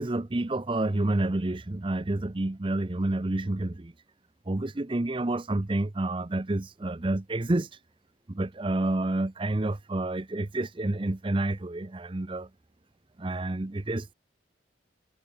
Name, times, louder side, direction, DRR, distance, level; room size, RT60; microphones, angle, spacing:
voice 1, 0.0-3.9 4.5-7.8 8.3-12.5 13.2-14.1, right 2 dB, 25° right, 0.6 m, -29 dB
head